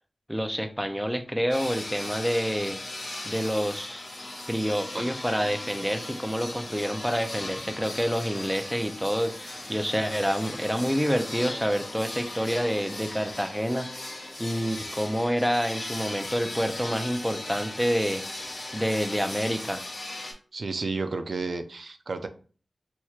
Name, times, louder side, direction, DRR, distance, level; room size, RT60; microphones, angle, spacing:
voice 1, 0.3-2.8 3.2-4.1 4.5-13.9 14.4-19.8, equal, ahead, 7 dB, 0.5 m, -28 dB
sound 1, 1.5-20.3, left 2 dB, 55° left, 1.2 m, -38 dB
voice 2, 20.5-22.3, right 3 dB, 65° right, 8 dB, 0.4 m, -32 dB
4.4 x 3.0 x 2.4 m, 0.39 s
wide cardioid pair, 60°, 0 cm